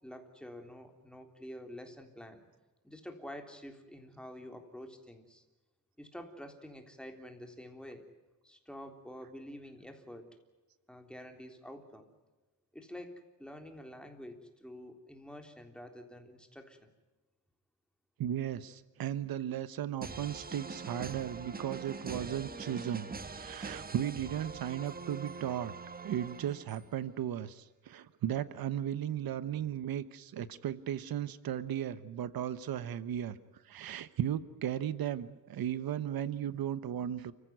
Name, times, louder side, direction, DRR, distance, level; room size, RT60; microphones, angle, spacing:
voice 1, 0.0-2.4 2.8-5.4 6.0-8.1 8.4-10.4 10.9-12.1 12.7-16.9, equal, 5° left, 5 dB, 3.5 m, -48 dB
voice 2, 18.2-25.7 26.0-33.4 33.6-37.3, right 10 dB, 90° right, 15 dB, 1.1 m, -36 dB
sound 1, 20.0-27.0, right 4 dB, 25° right, 1.3 m, -43 dB
30.0 x 15.0 x 9.4 m, 1.1 s
cardioid pair, 115°, 35 cm